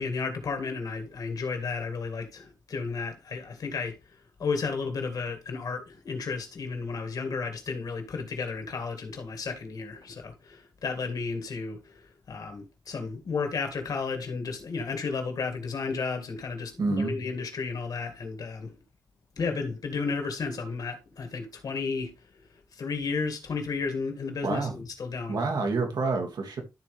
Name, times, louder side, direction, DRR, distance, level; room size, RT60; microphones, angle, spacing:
voice 1, 0.0-18.8 19.4-22.1 22.7-25.4, left 4 dB, 70° left, 2.1 m, -33 dB
voice 2, 16.8-17.1 24.4-24.7 25.3-26.6, right 3 dB, 85° right, 2.1 m, -28 dB
13.0 x 4.5 x 3.3 m
wide cardioid pair, 175°, 7 cm